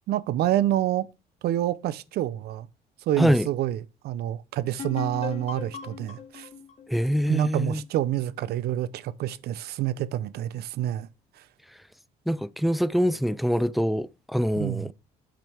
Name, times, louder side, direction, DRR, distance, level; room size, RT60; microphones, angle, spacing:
voice 1, 0.1-1.1 1.4-2.7 3.1-6.5 7.3-11.1 14.5-14.9, right 12 dB, 70° right, 0.7 m, -28 dB
voice 2, 3.2-3.5 6.9-7.8 12.3-14.9, equal, ahead, 0.4 m, -24 dB
sound 1, 4.8-8.4, left 7 dB, 40° left, 1.4 m, -39 dB
9.0 x 5.2 x 4.5 m
cardioid pair, 110°, 17 cm